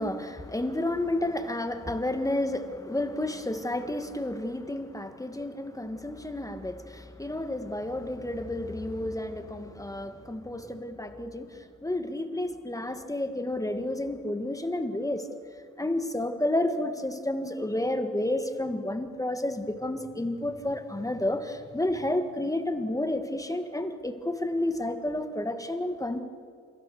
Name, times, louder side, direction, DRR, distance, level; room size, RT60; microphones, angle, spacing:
voice 1, 0.0-15.3 15.8-26.2, left 1 dB, 10° left, 8 dB, 1.7 m, -31 dB
29.5 x 15.5 x 7.0 m, 2.2 s
cardioid pair, 90°, 30 cm